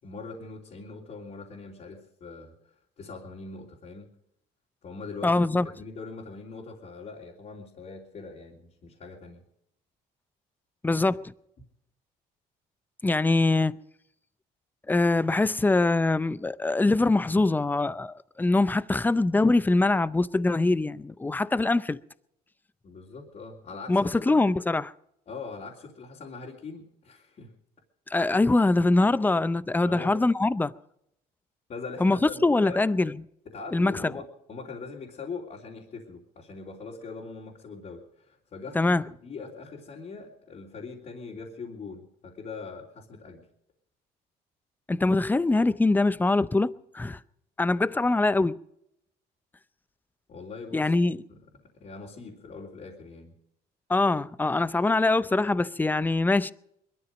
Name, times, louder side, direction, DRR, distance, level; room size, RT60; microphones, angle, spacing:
voice 1, 0.0-4.1 4.8-5.4 5.8-9.4 22.8-24.3 25.3-27.5 29.8-30.1 31.7-32.8 33.4-43.5 50.3-50.9 51.3-51.4 51.7-53.3, left 4 dB, 45° left, 3.2 m, -42 dB
voice 2, 5.2-5.7 10.8-11.3 13.0-13.8 14.9-22.0 23.9-24.9 28.1-30.7 32.0-33.2 33.7-34.1 38.7-39.0 44.9-47.2 47.6-48.6 50.7-51.2 53.9-56.5, left 2 dB, 10° left, 0.6 m, -23 dB
21.5 x 13.0 x 5.2 m
cardioid pair, 110°, 17 cm